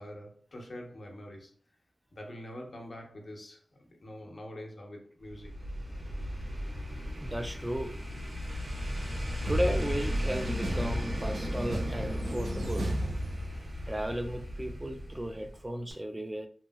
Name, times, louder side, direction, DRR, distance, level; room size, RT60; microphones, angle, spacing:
voice 1, 0.0-1.5 2.1-5.6, left 1 dB, 60° left, 0.8 m, -45 dB
sound 1, 5.3-15.6 15.9-16.0, equal, 60° right, 1.1 m, -36 dB
voice 2, 7.2-8.0 9.4-12.9 13.9-16.5, equal, 20° right, 0.4 m, -35 dB
sound 2, 9.5-13.9, right 1 dB, 85° right, 0.6 m, -34 dB
3.0 x 2.6 x 2.2 m
cardioid pair, 40°, 0 cm